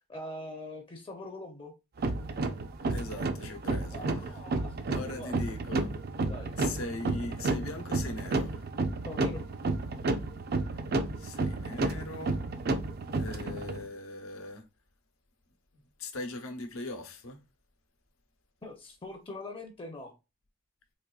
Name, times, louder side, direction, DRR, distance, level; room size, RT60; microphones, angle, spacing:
voice 1, 0.1-1.7 3.9-5.4 6.2-6.5 9.1-9.4 18.6-20.1, left 2 dB, 25° left, 0.5 m, -43 dB
sound 1, 2.0-13.8, right 3 dB, 45° right, 0.4 m, -31 dB
voice 2, 2.9-4.4 4.9-5.9 6.6-8.6 10.7-10.8 11.2-12.4 13.1-14.6 16.0-17.4, left 2 dB, 80° left, 0.9 m, -40 dB
4.2 x 3.0 x 2.3 m
head